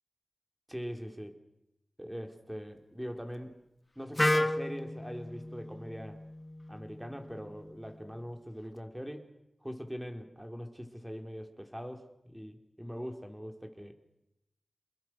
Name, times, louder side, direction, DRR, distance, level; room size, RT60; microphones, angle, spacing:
voice 1, 0.7-1.4 2.0-3.5 4.0-6.2 6.7-9.3 9.6-13.9, equal, 5° right, 4 dB, 4.3 m, -42 dB
Wind instrument woodwind instrument, 4.2-8.0, left 1 dB, 25° left, 1.5 m, -33 dB
29.5 x 22.0 x 6.4 m, 0.87 s
wide cardioid pair, 55°, 0 cm